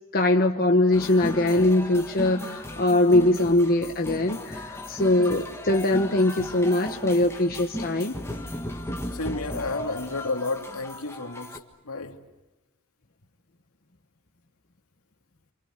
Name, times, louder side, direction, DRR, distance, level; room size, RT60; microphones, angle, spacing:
voice 1, 0.1-8.2, left 1 dB, 40° left, 1.2 m, -22 dB
sound 1, 0.9-11.6, left 1 dB, 10° left, 1.9 m, -36 dB
voice 2, 9.1-11.6 11.8-12.2, left 3 dB, 70° left, 2.6 m, -31 dB
29.0 x 27.5 x 6.5 m
head